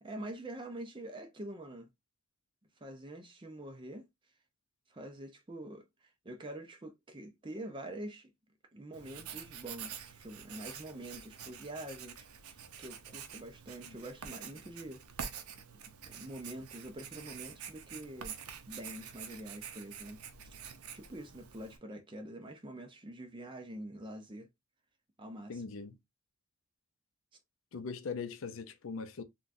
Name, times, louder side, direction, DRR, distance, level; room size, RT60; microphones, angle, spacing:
voice 1, 0.0-1.9 2.8-4.1 4.9-8.3 8.7-15.4 15.8-18.4 18.7-20.5 20.9-24.5 25.2-25.6, right 1 dB, 20° right, 0.5 m, -46 dB
Writing, 8.9-21.8, right 7 dB, 80° right, 0.5 m, -47 dB
voice 2, 25.5-26.0 27.7-29.2, left 5 dB, 60° left, 0.5 m, -40 dB
3.7 x 2.3 x 2.5 m
head